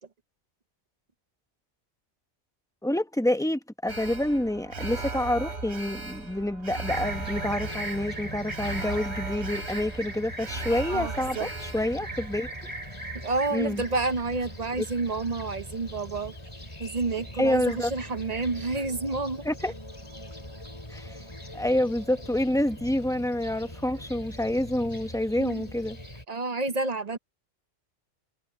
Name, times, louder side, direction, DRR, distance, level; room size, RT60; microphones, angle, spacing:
voice 1, 2.8-12.5 13.5-13.8 14.8-14.9 17.4-17.9 19.4-19.7 20.9-21.2 21.5-26.0, left 1 dB, 5° left, 0.9 m, -28 dB
Alarm, 3.9-14.1 14.5-14.6, right 3 dB, 65° right, 1.8 m, -38 dB
Fixed-wing aircraft airplane, 6.9-26.2, equal, 25° left, 4.9 m, -40 dB
voice 2, 10.9-11.5 13.2-16.3 16.8-19.4 25.4-25.6 26.3-27.2, right 3 dB, 40° right, 0.8 m, -29 dB
omnidirectional pair, 1.2 m